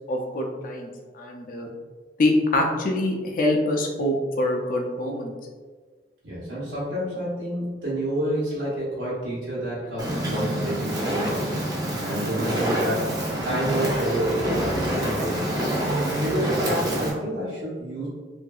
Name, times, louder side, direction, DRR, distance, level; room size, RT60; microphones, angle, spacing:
voice 1, 0.1-1.7 2.2-5.3, left 1 dB, 50° left, 2 dB, 0.4 m, -25 dB
voice 2, 6.2-11.5 12.1-13.1 13.4-15.5 16.1-18.1, right 1 dB, 90° right, -9 dB, 0.9 m, -28 dB
Fire, 10.0-17.1, right 1 dB, 20° right, 0.5 m, -27 dB
2.7 x 2.5 x 2.3 m, 1.4 s
head